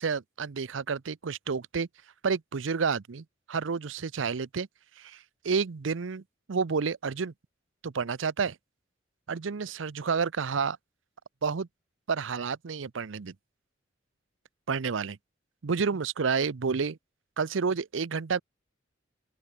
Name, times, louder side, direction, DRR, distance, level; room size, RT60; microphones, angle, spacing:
voice 1, 0.0-1.9 2.2-4.7 5.0-6.2 6.5-7.3 7.8-8.6 9.3-10.8 11.4-11.7 12.1-13.3 14.7-15.2 15.6-17.0 17.4-18.4, right 5 dB, 80° right, 0.6 m, -30 dB
open air
head